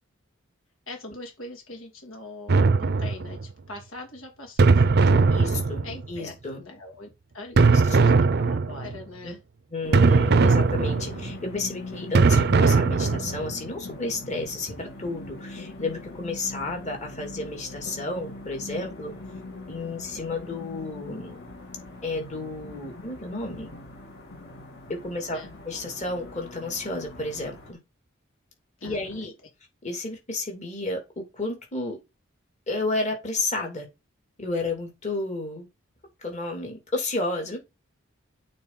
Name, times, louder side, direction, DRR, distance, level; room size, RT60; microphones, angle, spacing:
voice 1, 0.9-5.4 5.8-9.4 25.3-25.5 28.8-29.3, left 2 dB, 85° left, 3.1 m, -42 dB
sound 1, 2.5-3.5 4.6-6.2 7.6-9.0 9.9-11.4 12.1-13.5, right 4 dB, 50° right, 0.5 m, -20 dB
voice 2, 5.3-6.6 7.5-7.8 8.1-8.2 9.2-9.3 9.7-19.1 19.7-21.4 22.0-23.7 24.9-25.4 25.6-27.8 28.8-29.3 29.8-32.0 32.7-33.9 34.4-35.7 36.2-37.6, left 2 dB, 35° left, 2.8 m, -32 dB
sound 2, 9.8-27.7, left 2 dB, 55° left, 2.5 m, -41 dB
8.7 x 4.3 x 4.1 m
head